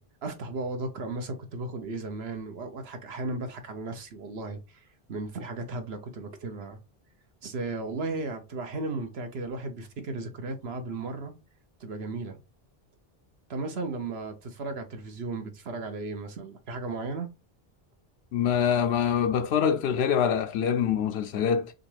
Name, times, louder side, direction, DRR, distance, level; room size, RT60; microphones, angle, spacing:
voice 1, 0.2-4.8 5.1-6.8 7.4-11.3 11.8-12.4 13.5-17.3, right 3 dB, 85° right, 1.2 m, -35 dB
voice 2, 18.3-21.7, left 8 dB, 90° left, 0.8 m, -25 dB
6.3 x 2.5 x 3.3 m
omnidirectional pair, 1.0 m